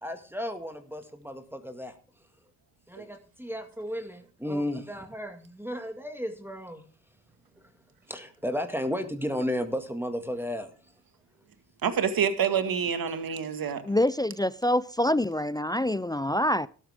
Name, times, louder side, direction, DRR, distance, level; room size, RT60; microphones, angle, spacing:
voice 1, 0.0-1.9 2.9-6.8 8.1-10.7, equal, 5° right, 2.0 m, -33 dB
voice 2, 11.8-13.8, right 7 dB, 60° right, 2.1 m, -27 dB
voice 3, 13.8-16.7, left 1 dB, 10° left, 0.4 m, -26 dB
13.5 x 12.0 x 3.6 m
supercardioid pair, 55°, 40 cm